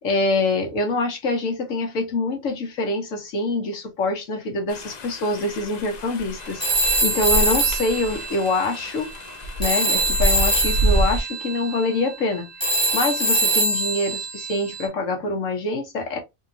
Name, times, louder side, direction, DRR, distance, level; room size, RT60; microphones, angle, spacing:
voice 1, 0.0-9.1 9.6-16.2, left 2 dB, 80° left, 1.5 m, -25 dB
sound 1, 4.7-11.2, right 1 dB, 45° left, 0.5 m, -27 dB
Telephone, 6.6-9.3 9.6-14.9, right 2 dB, 5° left, 1.3 m, -24 dB
3.6 x 2.9 x 2.6 m
omnidirectional pair, 1.3 m